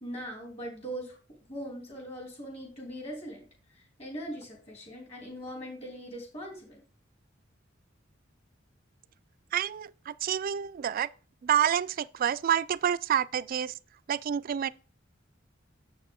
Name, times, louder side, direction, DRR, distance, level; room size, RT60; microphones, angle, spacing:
voice 1, 0.0-1.2 1.5-3.5 4.0-6.8, equal, 35° left, 2.9 m, -40 dB
voice 2, 9.5-11.1 11.4-13.7 14.1-14.7, right 9 dB, 45° right, 0.3 m, -28 dB
7.0 x 6.7 x 3.7 m
head